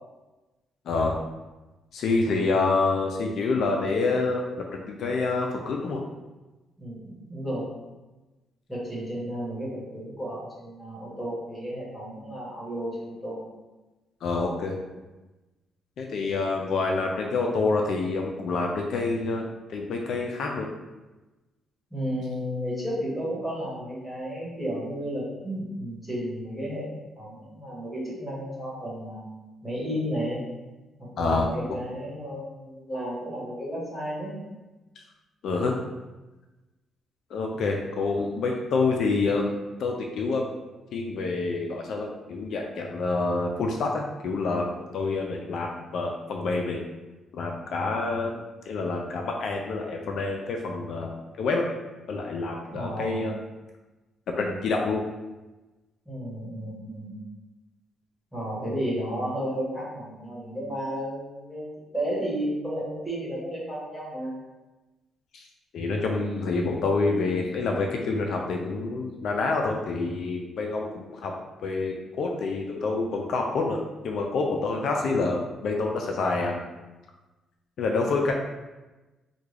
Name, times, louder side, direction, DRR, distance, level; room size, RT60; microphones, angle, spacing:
voice 1, 0.9-1.2 1.9-4.4 4.7-6.0 14.2-14.8 16.0-19.4 19.7-20.7 31.2-31.8 35.0-35.1 35.4-35.7 37.3-39.5 39.8-40.5 40.9-44.7 44.9-46.8 47.3-48.3 48.7-51.6 52.1-53.3 54.4-55.0 65.3-65.5 65.7-71.3 71.6-73.8 74.0-76.6 77.8-78.3, left 3 dB, 70° left, 1 dB, 0.3 m, -27 dB
voice 2, 6.8-7.7 8.7-13.4 21.9-29.2 29.6-30.4 31.0-34.3 52.7-53.2 56.0-57.2 58.3-64.3, equal, 5° left, -6 dB, 1.5 m, -33 dB
3.5 x 2.2 x 3.3 m, 1.1 s
cardioid pair, 90°, 0 cm